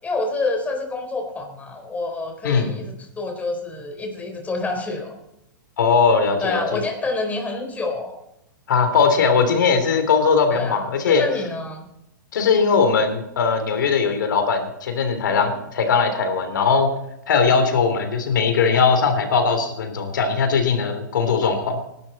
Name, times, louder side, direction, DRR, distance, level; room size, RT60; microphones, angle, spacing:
voice 1, 0.0-5.2 6.4-8.2 10.5-11.9, left 3 dB, 15° left, 3 dB, 4.0 m, -28 dB
voice 2, 2.4-2.8 5.8-6.8 8.7-11.3 12.3-16.9 17.3-21.8, left 5 dB, 70° left, 7 dB, 3.2 m, -19 dB
19.5 x 12.0 x 4.2 m, 0.84 s
hypercardioid pair, 120°, 11 cm